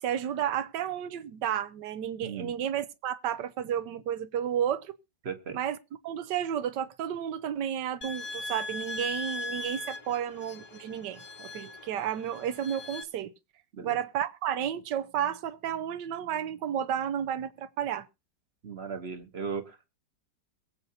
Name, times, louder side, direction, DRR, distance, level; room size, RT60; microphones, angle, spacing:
voice 1, 0.0-5.0 5.5-5.8 6.0-13.3 13.8-18.1, right 9 dB, 75° right, 1.4 m, -32 dB
voice 2, 5.2-5.6 13.7-14.0 18.6-19.9, right 5 dB, 40° right, 1.1 m, -37 dB
sound 1, 8.0-13.0, left 2 dB, 25° left, 1.0 m, -39 dB
22.5 x 8.0 x 2.7 m
omnidirectional pair, 1.9 m